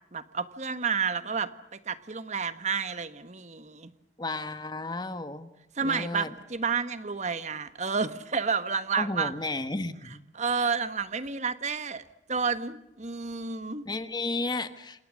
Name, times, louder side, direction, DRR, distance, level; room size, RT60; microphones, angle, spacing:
voice 1, 0.1-3.9 5.7-9.3 10.3-12.0 12.3-13.9, right 5 dB, 40° right, 12 dB, 1.4 m, -30 dB
voice 2, 4.2-5.5 5.8-6.3 9.0-10.2 10.6-10.7 13.8-15.0, left 2 dB, 25° left, 10 dB, 1.4 m, -33 dB
27.5 x 27.5 x 6.4 m, 0.89 s
head